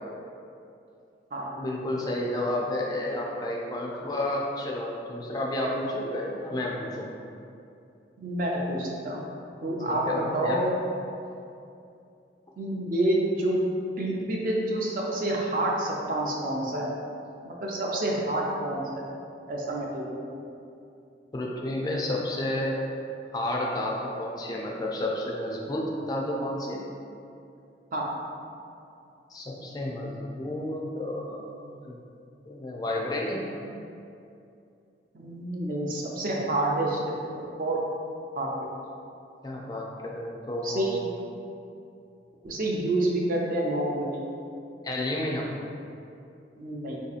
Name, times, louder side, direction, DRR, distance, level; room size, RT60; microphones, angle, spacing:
voice 1, 1.6-7.1 9.9-10.6 21.3-22.8 23.3-26.8 29.3-31.5 31.8-32.0 32.4-33.5 39.4-41.1 44.8-45.5, left 1 dB, 20° left, -2 dB, 0.3 m, -31 dB
voice 2, 8.2-9.2 9.6-10.8 12.6-13.6 14.0-16.9 17.4-19.1 19.5-20.2 27.9-28.1 35.1-37.8 38.4-38.5 40.6-41.0 42.4-44.2 46.6-47.0, right 1 dB, 50° right, -2 dB, 0.5 m, -28 dB
4.1 x 2.7 x 2.4 m, 2.6 s
head